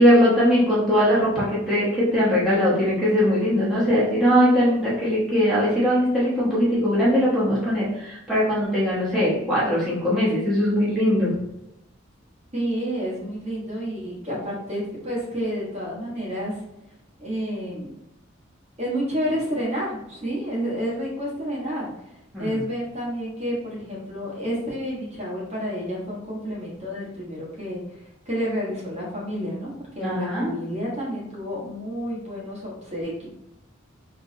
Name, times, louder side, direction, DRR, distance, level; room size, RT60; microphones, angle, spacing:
voice 1, 0.0-11.3 22.3-22.6 30.0-30.5, equal, ahead, -11 dB, 1.1 m, -20 dB
voice 2, 12.5-16.6 17.2-17.9 18.8-21.9 22.4-29.7 29.9-33.3, equal, 30° right, -6 dB, 1.4 m, -30 dB
3.9 x 3.5 x 2.8 m, 0.86 s
head